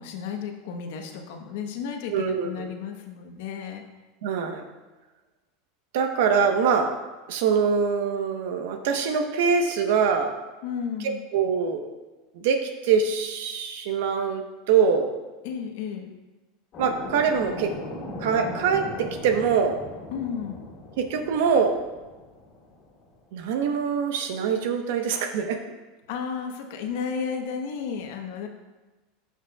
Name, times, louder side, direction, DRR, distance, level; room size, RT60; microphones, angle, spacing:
voice 1, 0.0-3.8 10.6-11.2 15.4-16.1 20.1-20.7 26.1-28.5, left 6 dB, 70° left, 4 dB, 1.1 m, -33 dB
voice 2, 2.1-2.7 4.2-4.6 5.9-6.9 7.3-10.3 11.3-11.8 12.3-15.1 16.8-17.7 18.2-19.8 21.0-21.8 23.3-25.6, right 6 dB, 75° right, 5 dB, 1.1 m, -24 dB
sound 1, 16.7-23.1, left 1 dB, 45° left, 2.0 m, -38 dB
13.5 x 5.9 x 2.4 m, 1.2 s
supercardioid pair, 120°, 0 cm